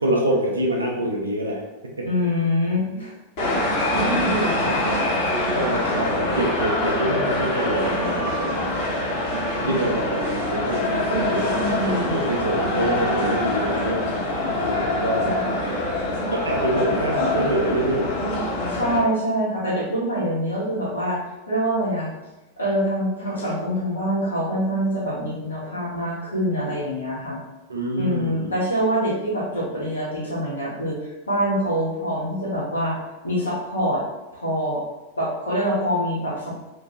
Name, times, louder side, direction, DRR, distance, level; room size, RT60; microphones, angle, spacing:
voice 1, 0.0-2.1 4.8-5.0 5.5-8.9 9.6-14.1 14.6-15.4 16.3-18.1 27.7-28.6, right 1 dB, 80° right, 0 dB, 0.6 m, -26 dB
voice 2, 2.0-3.1 3.4-4.9 11.4-12.3 18.7-21.2 21.5-22.1 22.6-27.4 27.9-33.0 33.2-34.0 34.3-34.8 35.2-36.7, equal, 75° left, -6 dB, 1.4 m, -25 dB
sound 1, 3.4-19.0, left 1 dB, 50° left, 1.4 m, -24 dB
3.0 x 2.6 x 3.2 m, 1.0 s
figure-of-eight pair, 90°, 0 cm